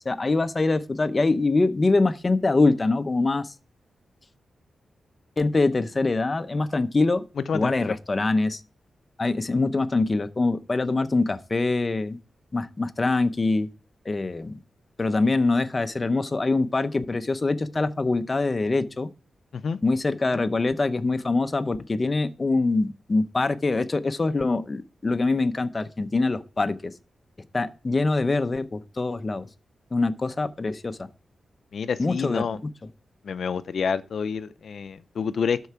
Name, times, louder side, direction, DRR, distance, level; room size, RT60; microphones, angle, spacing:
voice 1, 0.1-3.5 5.4-7.2 7.5-8.6 9.2-12.2 12.5-13.7 14.1-14.6 15.0-19.1 19.8-26.9 27.5-29.5 29.9-31.1 32.0-32.5, left 3 dB, 30° left, 0.7 m, -24 dB
voice 2, 7.4-8.0 19.5-19.8 31.7-32.6 33.2-35.7, left 6 dB, 65° left, 0.6 m, -28 dB
12.5 x 4.6 x 4.6 m
wide cardioid pair, 125°, 0 cm